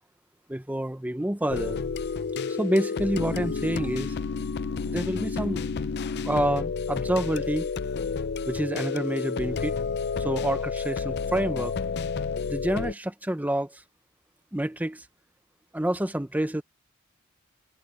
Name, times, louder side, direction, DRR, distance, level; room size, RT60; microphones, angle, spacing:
voice 1, 0.5-1.8 2.5-4.1 4.8-5.6 6.2-7.7 8.5-9.8 10.2-11.7 12.5-13.8 14.5-15.1 15.7-16.6, right 1 dB, 10° right, 0.8 m, -28 dB
sound 1, 1.5-12.9, left 5 dB, 55° left, 0.5 m, -30 dB
head